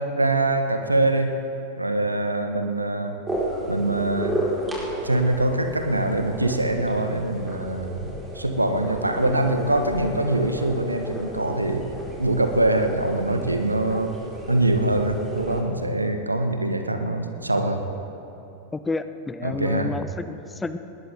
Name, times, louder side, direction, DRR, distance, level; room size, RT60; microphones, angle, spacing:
voice 1, 0.0-1.4 1.8-3.2 3.7-4.4 5.0-11.9 12.2-14.1 14.5-17.8 19.4-19.9, right 2 dB, 85° right, 7 dB, 1.2 m, -23 dB
sound 1, 3.3-15.6, right 1 dB, 10° right, 4.2 m, -33 dB
voice 2, 18.7-20.8, left 3 dB, 10° left, 11 dB, 0.6 m, -30 dB
20.0 x 19.5 x 3.5 m, 2.9 s
figure-of-eight pair, 90°, 0 cm